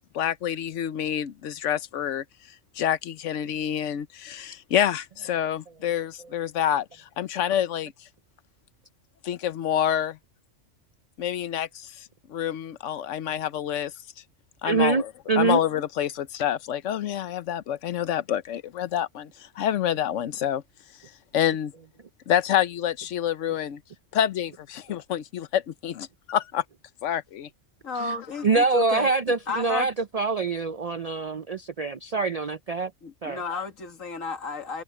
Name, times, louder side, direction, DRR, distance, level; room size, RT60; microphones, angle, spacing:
voice 1, 0.1-2.2 2.7-8.1 9.2-10.2 11.2-13.9 14.6-15.1 15.4-20.6 21.3-21.7 22.3-23.8 24.1-26.6 27.0-27.5 28.0-28.1, left 10 dB, 70° left, 1.1 m, -27 dB
voice 2, 14.6-15.0 15.3-15.6 28.4-32.9 33.2-33.4, right 4 dB, 60° right, 0.4 m, -24 dB
voice 3, 27.8-29.1 29.5-29.9 33.0-34.8, left 4 dB, 90° left, 2.3 m, -33 dB
omnidirectional pair, 1.3 m